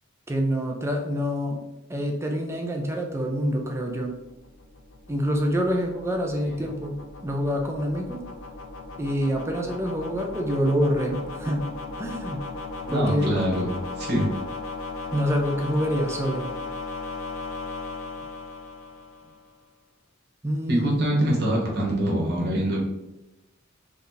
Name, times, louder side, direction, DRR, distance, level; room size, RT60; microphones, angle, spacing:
voice 1, 0.3-1.6 1.9-4.1 5.1-7.0 7.2-8.2 9.0-11.7 12.0-12.5 12.9-13.3 15.1-16.5 20.4-21.1, equal, 15° right, 1 dB, 0.5 m, -26 dB
sound 1, 3.3-19.5, left 3 dB, 75° left, 0.5 m, -37 dB
voice 2, 12.9-14.3 20.7-22.8, right 1 dB, 50° right, -3 dB, 1.1 m, -24 dB
3.5 x 2.7 x 3.9 m, 0.95 s
head